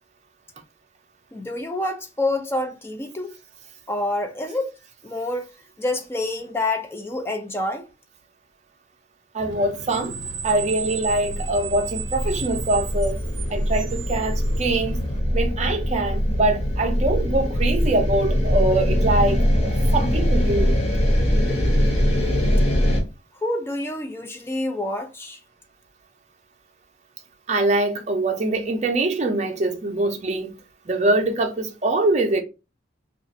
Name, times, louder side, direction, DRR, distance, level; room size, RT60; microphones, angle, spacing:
voice 1, 1.3-3.3 3.9-4.7 5.0-5.5 5.8-7.9 23.4-25.4, left 2 dB, 15° left, 0.4 m, -27 dB
voice 2, 9.3-10.2 10.4-13.2 13.5-15.0 15.3-20.7 27.5-30.5 30.9-32.4, right 2 dB, 40° right, 0.6 m, -23 dB
Screech, 9.4-15.2, right 6 dB, 90° right, 0.5 m, -35 dB
sound 1, 10.4-23.0, equal, 35° left, 0.8 m, -22 dB
2.5 x 2.4 x 4.0 m
head